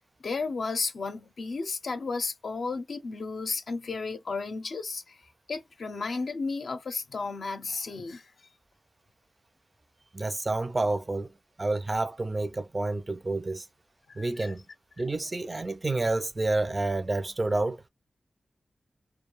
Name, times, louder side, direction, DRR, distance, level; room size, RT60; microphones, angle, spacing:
voice 1, 0.2-5.2 5.5-8.2 14.1-14.5, left 4 dB, 75° left, 0.5 m, -33 dB
voice 2, 10.1-11.3 11.6-13.7 14.2-14.6 15.0-17.8, right 2 dB, 35° right, 0.5 m, -29 dB
2.3 x 2.2 x 3.0 m
cardioid pair, 50°, 0 cm